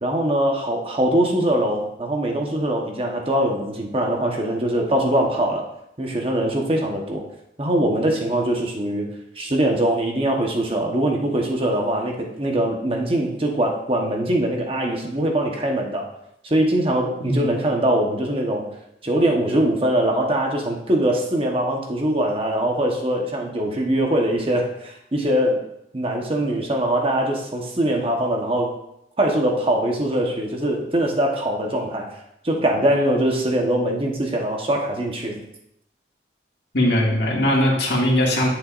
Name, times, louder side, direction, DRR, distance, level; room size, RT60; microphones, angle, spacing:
voice 1, 0.0-5.6 6.0-7.2 7.6-9.1 9.4-16.1 16.4-18.7 19.0-25.6 25.9-28.7 29.2-32.1 32.4-35.4, right 1 dB, 30° right, 1 dB, 1.1 m, -22 dB
voice 2, 36.7-38.5, left 1 dB, 70° left, -3 dB, 2.2 m, -20 dB
11.5 x 6.7 x 2.5 m, 0.82 s
head